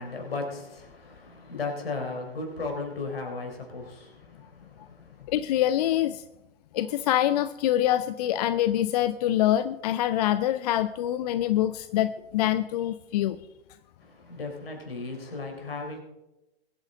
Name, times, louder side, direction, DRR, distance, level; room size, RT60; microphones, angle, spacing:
voice 1, 0.0-5.3 14.0-16.0, left 3 dB, 75° left, 4.0 m, -36 dB
voice 2, 5.3-6.2 6.7-13.4, left 12 dB, 40° left, 0.5 m, -25 dB
22.0 x 9.0 x 3.8 m
figure-of-eight pair, 110°, 30 cm